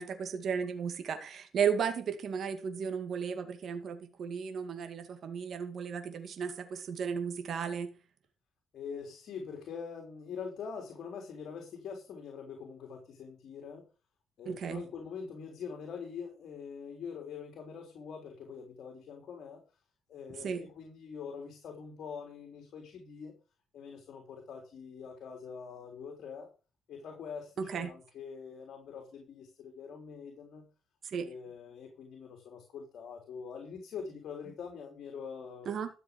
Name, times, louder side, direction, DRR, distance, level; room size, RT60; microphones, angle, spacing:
voice 1, 0.0-7.9 14.5-14.8 20.4-20.7 27.6-27.9 31.0-31.3 35.7-35.9, right 7 dB, 60° right, 2.2 m, -34 dB
voice 2, 8.7-13.9 14.4-19.6 20.1-23.3 23.7-26.5 26.9-30.7 31.2-35.7, left 6 dB, 70° left, 3.8 m, -44 dB
13.5 x 7.5 x 5.3 m
cardioid pair, 90°, 0 cm